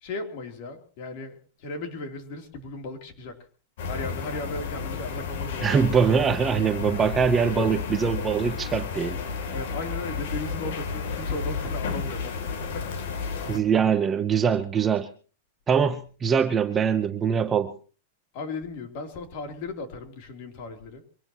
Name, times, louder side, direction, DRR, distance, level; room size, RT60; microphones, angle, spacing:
voice 1, 0.0-3.4 3.9-6.1 9.5-12.4 12.7-12.9 18.3-21.0, left 3 dB, 45° left, 3.2 m, -36 dB
sound 1, 3.8-13.6, left 5 dB, 60° left, 2.9 m, -32 dB
voice 2, 5.6-9.2 13.5-15.1 15.7-17.8, right 6 dB, 15° right, 0.8 m, -23 dB
24.0 x 18.5 x 3.0 m
supercardioid pair, 165°, 0 cm